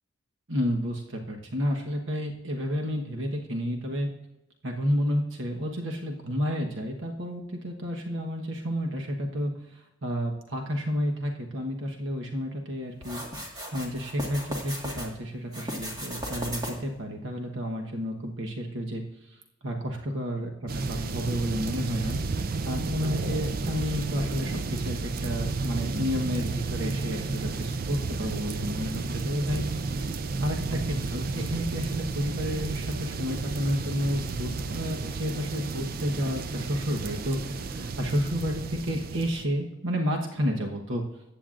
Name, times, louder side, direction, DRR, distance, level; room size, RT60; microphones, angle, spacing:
voice 1, 0.5-4.1 4.6-13.2 13.7-19.0 19.3-22.2 22.6-29.6 30.4-41.0, equal, 70° right, 1 dB, 1.3 m, -31 dB
sound 1, 13.0-15.1 15.5-17.0, equal, 20° right, 1.7 m, -36 dB
sound 2, 20.7-39.4, right 3 dB, 45° right, 0.4 m, -32 dB
14.5 x 9.2 x 2.5 m, 0.96 s
head